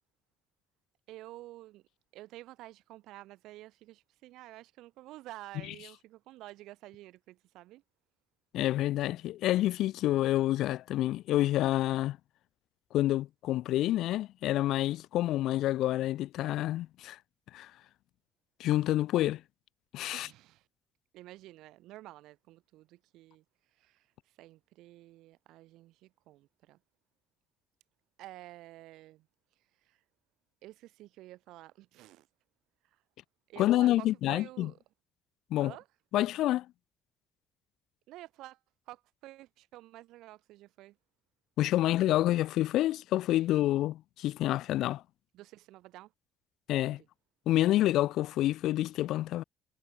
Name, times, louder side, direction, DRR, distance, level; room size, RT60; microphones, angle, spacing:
voice 1, 1.1-1.9 2.1-7.8 20.1-20.7 21.1-26.8 28.2-29.3 29.6-30.0 30.6-32.3 32.8-33.0 33.5-34.8 35.6-35.9 38.1-38.6 38.9-41.0 45.3-46.1 46.9-47.1, right 16 dB, 80° right, 7.3 m, -50 dB
voice 2, 8.5-12.2 12.9-17.2 17.5-17.7 18.6-19.4 19.9-20.3 33.6-34.7 35.5-35.7 36.1-36.7 41.6-45.0 46.7-47.0 47.5-49.4, left 14 dB, 70° left, 0.5 m, -28 dB
cardioid pair, 150°, 0 cm